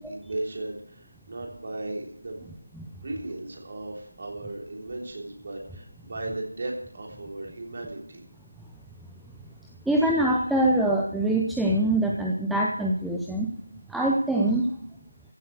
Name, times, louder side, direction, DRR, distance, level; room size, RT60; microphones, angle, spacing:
voice 1, 0.0-2.4 3.0-8.2, right 2 dB, 30° right, 0 dB, 3.4 m, -36 dB
voice 2, 9.9-13.5 13.9-14.7, right 1 dB, ahead, -2 dB, 0.5 m, -24 dB
15.0 x 7.7 x 7.9 m, 0.65 s
figure-of-eight pair, 170°, 0 cm